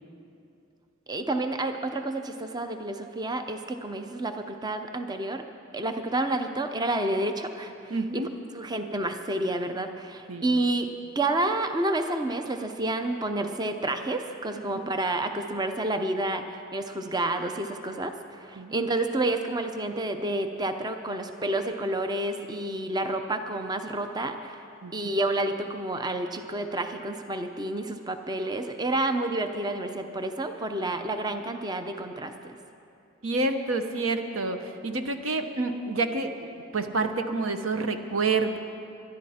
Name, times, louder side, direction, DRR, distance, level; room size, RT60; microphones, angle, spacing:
voice 1, 1.1-5.4 5.7-8.3 8.5-10.9 11.2-24.6 24.9-32.6, right 2 dB, 20° right, 7 dB, 0.6 m, -29 dB
voice 2, 7.9-8.3 10.3-10.5 14.8-14.9 18.6-18.7 24.8-25.2 33.2-38.6, right 3 dB, 80° right, 7 dB, 1.0 m, -28 dB
23.0 x 11.5 x 4.3 m, 2.6 s
head